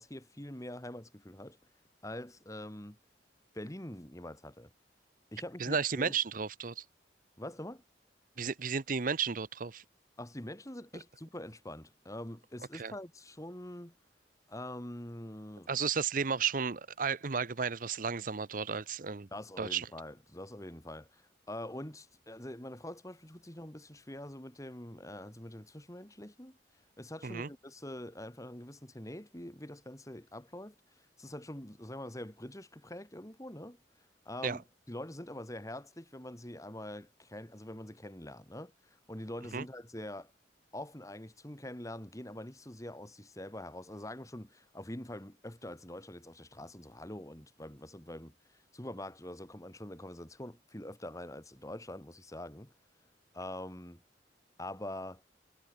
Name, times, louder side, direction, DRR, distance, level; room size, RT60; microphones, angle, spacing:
voice 1, 0.0-1.6 2.0-3.0 3.5-4.7 5.3-6.2 7.4-7.8 10.2-13.9 14.5-15.7 19.3-26.6 27.0-33.8 34.2-40.3 40.7-52.7 53.3-54.0 54.6-55.2, left 1 dB, 20° left, 2.7 m, -44 dB
voice 2, 5.6-6.8 8.4-9.8 12.7-12.9 15.7-19.3 19.6-19.9 27.2-27.5 34.4-34.6 39.5-39.6, right 6 dB, 45° right, 0.8 m, -33 dB
head